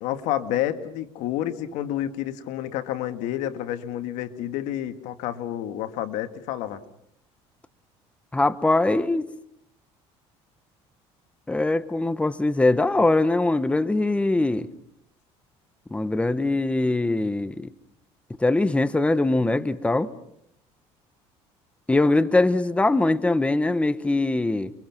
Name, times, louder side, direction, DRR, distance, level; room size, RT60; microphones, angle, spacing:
voice 1, 0.0-6.8, left 12 dB, 80° left, 9 dB, 1.8 m, -29 dB
voice 2, 8.3-9.3 11.5-14.7 15.9-17.7 18.4-20.1 21.9-24.7, left 2 dB, 10° left, 13 dB, 1.2 m, -22 dB
30.0 x 23.5 x 6.0 m, 0.72 s
cardioid pair, 105°, 12 cm